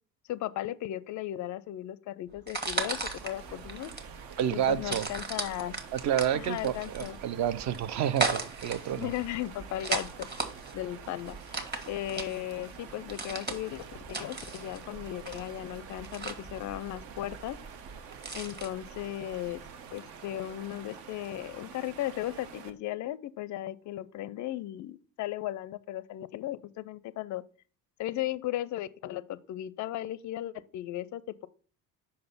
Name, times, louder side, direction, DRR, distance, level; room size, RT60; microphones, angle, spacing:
voice 1, 0.3-3.9 4.5-5.7 6.3-7.2 9.0-10.1 10.7-11.6 11.9-17.6 18.3-19.6 19.9-27.4 28.0-31.5, left 14 dB, 40° left, 0.4 m, -36 dB
sound 1, 2.4-18.7, right 3 dB, 20° right, 1.3 m, -37 dB
sound 2, 2.7-22.7, right 6 dB, 60° right, 0.9 m, -47 dB
voice 2, 4.4-5.1 5.9-9.1, right 10 dB, 40° right, 0.4 m, -29 dB
5.4 x 3.9 x 5.2 m
hypercardioid pair, 60°, 48 cm